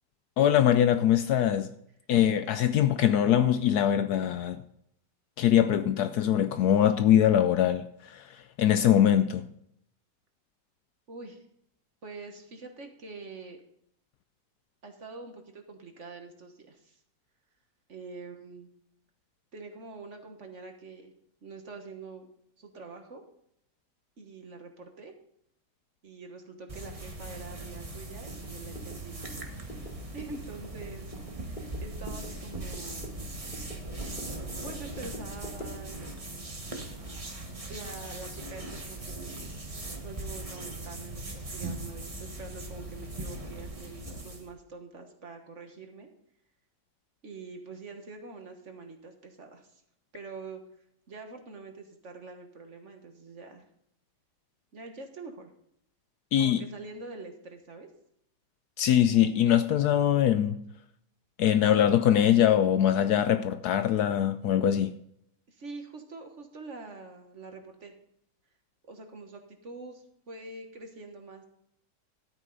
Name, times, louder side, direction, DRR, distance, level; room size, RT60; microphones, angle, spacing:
voice 1, 0.4-1.7 2.1-4.6 5.4-9.4 56.3-56.6 58.8-60.6 61.4-64.9, left 10 dB, 70° left, 1.0 m, -23 dB
voice 2, 11.1-11.4 12.0-13.6 14.8-17.0 17.9-18.7 19.5-21.1 21.4-22.3 22.6-23.2 24.2-25.1 26.0-29.3 29.8-33.3 34.6-36.1 37.7-39.4 40.0-46.1 47.2-49.8 50.1-50.6 51.1-53.6 54.7-55.5 56.4-57.9 65.5-68.0 68.9-71.4, right 3 dB, 45° right, 1.5 m, -45 dB
sound 1, 26.7-44.5, right 2 dB, 20° right, 1.2 m, -40 dB
sound 2, 28.3-35.9, equal, 25° left, 2.8 m, -46 dB
13.0 x 8.9 x 3.9 m
omnidirectional pair, 1.9 m